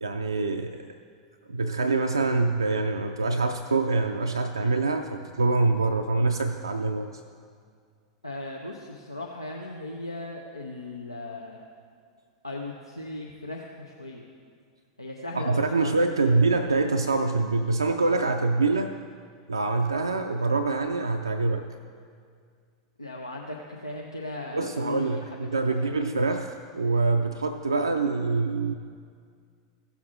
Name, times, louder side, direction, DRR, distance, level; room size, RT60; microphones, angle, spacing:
voice 1, 0.0-0.8 1.5-7.1 15.3-18.9 19.5-21.7 24.5-28.7, right 3 dB, 80° right, 5 dB, 0.4 m, -25 dB
voice 2, 8.2-11.6 12.4-14.2 15.0-16.0 16.3-16.4 16.6-16.9 23.0-23.6 23.8-25.2 25.7-26.0, left 2 dB, 90° left, -1 dB, 0.8 m, -37 dB
16.0 x 7.1 x 3.7 m, 2.1 s
figure-of-eight pair, 90°, 2 cm